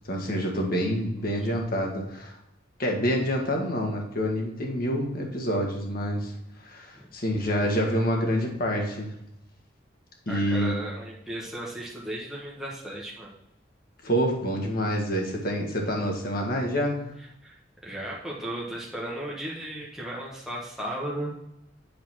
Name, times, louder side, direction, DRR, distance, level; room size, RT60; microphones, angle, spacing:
voice 1, 0.1-2.4 2.8-6.3 6.6-9.1 10.3-10.7 14.0-17.0, equal, 50° left, 1 dB, 1.8 m, -27 dB
voice 2, 1.3-1.6 6.9-7.1 10.3-13.3 17.4-17.5 17.8-21.3, right 1 dB, 5° right, -5 dB, 1.3 m, -35 dB
8.5 x 4.0 x 6.1 m, 0.81 s
head